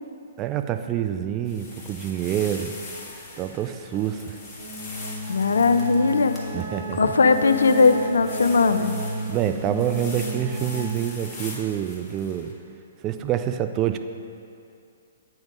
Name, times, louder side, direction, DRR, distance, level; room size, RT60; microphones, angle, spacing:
voice 1, 0.4-2.7 3.4-4.4 6.5-7.1 9.3-12.5 13.0-14.0, right 10 dB, 30° right, 9 dB, 0.3 m, -27 dB
sound 1, 1.5-12.5, left 2 dB, 20° left, 1.4 m, -42 dB
sound 2, 4.6-10.8, equal, 70° right, 1.1 m, -32 dB
voice 2, 5.3-6.4 7.0-8.9, left 4 dB, 75° left, 10 dB, 0.3 m, -19 dB
8.9 x 3.6 x 5.2 m, 2.5 s
figure-of-eight pair, 125°, 0 cm